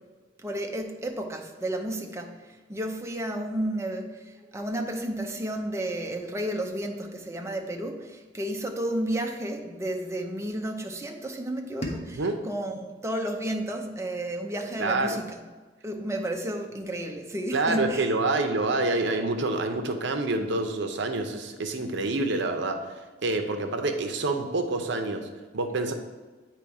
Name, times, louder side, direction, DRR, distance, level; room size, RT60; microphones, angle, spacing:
voice 1, 0.4-15.3 15.8-18.1, right 1 dB, 15° right, 3 dB, 0.6 m, -32 dB
sound 1, 11.8-14.7, equal, 35° left, 0.9 m, -41 dB
voice 2, 14.8-15.2 17.5-22.8 23.2-25.2 25.5-25.9, right 2 dB, 65° right, 6 dB, 0.6 m, -27 dB
8.6 x 3.0 x 4.8 m, 1.3 s
head